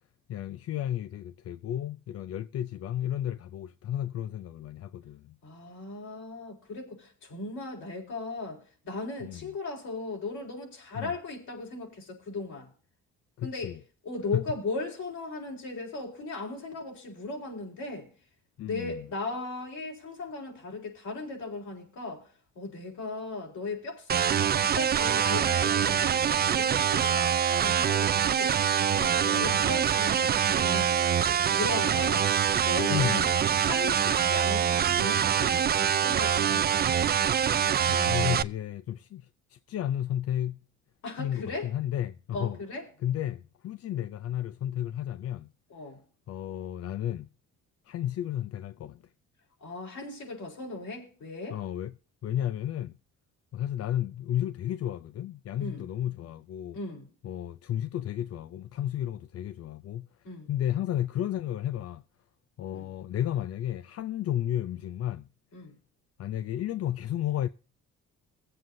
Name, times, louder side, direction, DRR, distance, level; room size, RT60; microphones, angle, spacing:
voice 1, 0.3-5.4 9.2-9.5 11.0-11.1 13.4-13.8 14.3-14.4 18.6-19.0 29.3-29.7 32.9-33.3 36.5-36.7 37.9-40.6 41.2-42.6 43.0-45.5 46.3-47.3 47.9-49.0 51.5-51.9 52.2-52.9 53.5-56.8 57.2-60.1 60.5-62.0 62.6-65.3 66.2-67.5, left 11 dB, 55° left, 0.5 m, -32 dB
voice 2, 5.4-12.7 13.4-13.7 14.0-18.1 18.6-22.3 22.6-24.2 24.5-28.5 28.9-32.3 32.6-33.3 33.6-37.0 41.0-41.7 42.3-42.8 45.7-46.0 49.6-51.6 55.6-55.9 56.7-57.1 60.2-60.5 62.7-62.9 65.5-65.7, left 3 dB, 75° left, 4.0 m, -37 dB
sound 1, 24.1-38.4, right 8 dB, 35° right, 0.4 m, -25 dB
22.5 x 7.7 x 2.6 m
cardioid pair, 90°, 30 cm